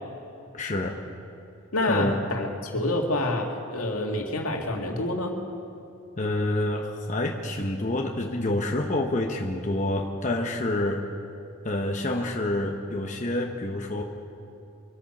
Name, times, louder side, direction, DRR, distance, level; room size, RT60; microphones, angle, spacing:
voice 1, 0.5-0.9 1.9-2.2 6.2-11.0 11.6-14.0, left 1 dB, 35° left, 1 dB, 0.9 m, -27 dB
voice 2, 1.7-5.3, left 1 dB, 85° left, 1 dB, 2.0 m, -27 dB
24.5 x 8.9 x 6.0 m, 2.7 s
head